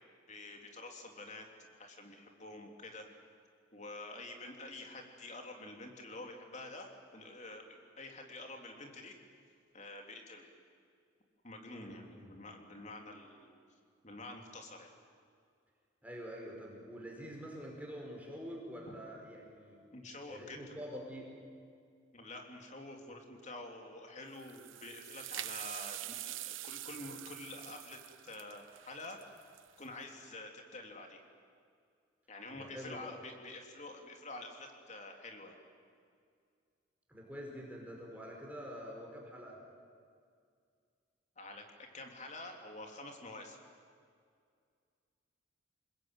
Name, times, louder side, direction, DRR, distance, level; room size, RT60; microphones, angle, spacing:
voice 1, 0.3-3.1 3.7-9.2 9.7-10.5 11.4-13.5 14.0-14.9 19.9-20.7 22.1-29.2 29.8-31.3 32.3-35.6 41.4-41.6 41.9-43.6, left 2 dB, 35° left, 3 dB, 3.5 m, -48 dB
voice 2, 11.7-12.4 16.0-19.8 20.3-21.3 32.6-33.2 37.1-39.6, equal, 10° right, -1 dB, 5.0 m, -46 dB
sound 1, 24.3-29.9, right 14 dB, 80° right, 0.8 m, -45 dB
28.0 x 20.5 x 9.3 m, 2.2 s
head